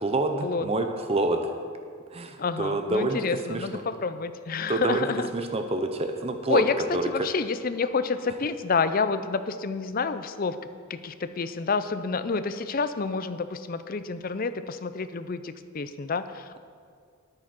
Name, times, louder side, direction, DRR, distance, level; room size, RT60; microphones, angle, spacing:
voice 1, 0.0-1.5 2.1-3.2 3.5-3.7 4.7-5.1 5.3-6.6 6.9-7.1, right 2 dB, 25° right, 6 dB, 0.6 m, -27 dB
voice 2, 2.4-5.3 6.5-10.6 10.9-16.6, left 4 dB, 40° left, 11 dB, 0.4 m, -29 dB
9.9 x 8.9 x 5.9 m, 2.1 s
head